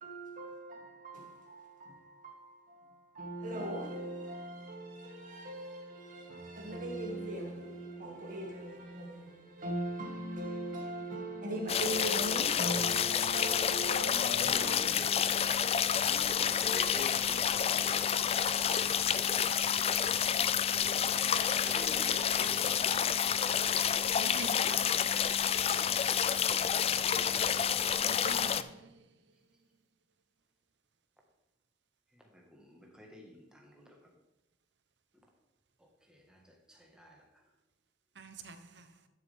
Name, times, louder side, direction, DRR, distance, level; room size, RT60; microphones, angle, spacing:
voice 1, 0.0-2.8 3.2-14.8, right 1 dB, 50° right, 2.1 m, -40 dB
sound 1, 11.7-28.6, left 8 dB, 35° left, 0.4 m, -29 dB
voice 2, 12.8-13.2 14.2-15.4 16.0-18.0 21.6-22.8 23.1-23.9 26.2-26.8 27.2-27.5 32.3-33.9 36.1-36.4 36.7-37.2, equal, 5° right, 1.7 m, -48 dB
voice 3, 24.1-25.1 28.0-28.7 38.2-38.6, right 3 dB, 75° right, 0.9 m, -44 dB
11.5 x 7.1 x 3.6 m
head